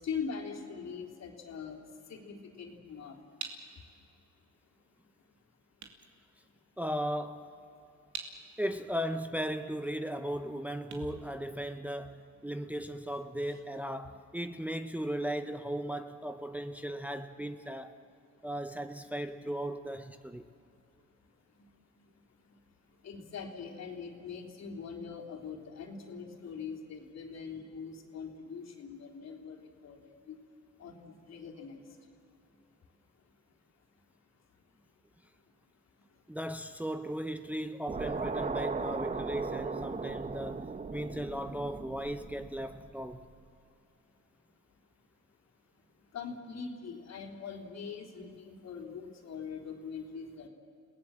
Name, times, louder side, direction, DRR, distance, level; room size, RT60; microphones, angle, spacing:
voice 1, 0.0-1.8 2.1-3.2 13.5-13.6 23.0-29.6 29.8-30.0 30.3-30.4 30.8-31.8 46.1-50.5, left 6 dB, 60° left, 3.4 m, -42 dB
sound 1, 3.4-12.2, right 5 dB, 70° right, 2.7 m, -49 dB
voice 2, 6.8-7.5 8.6-17.9 18.4-20.4 36.3-43.3, equal, 5° right, 0.8 m, -37 dB
sound 2, 37.9-43.2, right 4 dB, 25° right, 1.1 m, -37 dB
29.5 x 18.0 x 7.6 m
cardioid pair, 90°, 30 cm